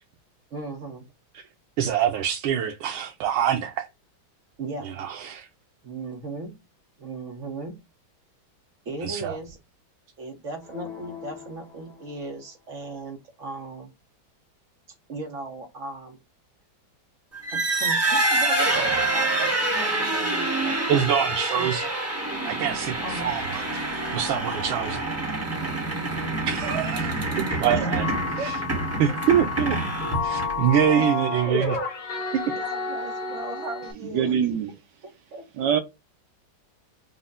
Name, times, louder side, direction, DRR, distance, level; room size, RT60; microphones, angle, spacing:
voice 1, 0.5-1.0 4.6-4.9 5.8-6.5 7.0-7.7 8.8-9.6 10.2-13.9 15.1-16.2 17.5-21.3 21.6-21.8 23.0-23.3 27.7-27.9 28.4-29.1 31.0-31.1 32.5-34.3 35.3-35.4, right 2 dB, 50° right, 1.0 m, -37 dB
voice 2, 1.8-3.9 4.8-5.5 9.0-9.4 20.9-21.9 22.4-23.6 24.1-25.1 26.5-28.1 28.3-28.6 29.0-29.8 30.2-31.8 32.3-32.6, right 9 dB, 90° right, 1.4 m, -25 dB
sound 1, 10.6-12.7, left 8 dB, 90° left, 2.0 m, -43 dB
sound 2, 17.3-30.8, right 2 dB, 10° right, 0.9 m, -26 dB
sound 3, 27.9-33.9, left 3 dB, 65° left, 1.9 m, -30 dB
voice 3, 34.0-34.7 35.6-35.8, right 8 dB, 70° right, 1.2 m, -23 dB
5.3 x 2.1 x 3.5 m
omnidirectional pair, 2.1 m